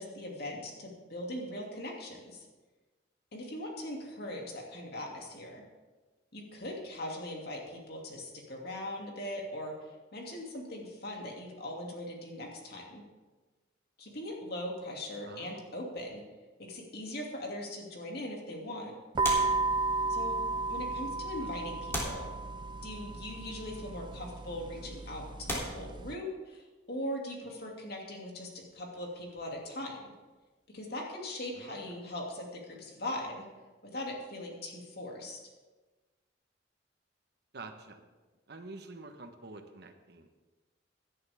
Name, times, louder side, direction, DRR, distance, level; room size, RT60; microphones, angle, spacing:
voice 1, 0.0-2.5 3.3-5.6 6.3-9.7 10.1-13.0 14.0-16.2 16.6-18.9 20.1-20.4 20.7-22.3 22.8-30.0 30.7-33.5 33.8-35.4, left 1 dB, 60° left, -1 dB, 2.6 m, -40 dB
voice 2, 15.2-15.6 21.4-21.5 31.6-31.8 37.5-38.1 38.5-40.3, right 3 dB, 60° right, 6 dB, 1.2 m, -47 dB
sound 1, 19.1-26.1, right 3 dB, 25° right, 0.3 m, -34 dB
sound 2, 19.2-20.3 21.1-21.2 21.9-23.0 24.0-24.2 24.8-24.9 25.4-26.7 28.6-30.4 30.6-30.8, equal, 15° left, 3.0 m, -39 dB
17.0 x 10.5 x 3.6 m, 1.3 s
head